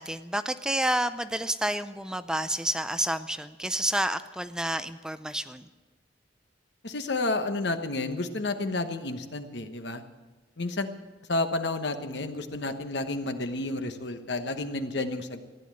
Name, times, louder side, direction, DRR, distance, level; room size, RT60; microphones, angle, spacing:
voice 1, 0.0-5.6, right 1 dB, 5° right, 12 dB, 0.4 m, -29 dB
voice 2, 6.8-10.0 10.6-10.9 11.3-15.4, left 2 dB, 65° left, 8 dB, 1.1 m, -31 dB
15.5 x 10.5 x 7.5 m, 1.3 s
head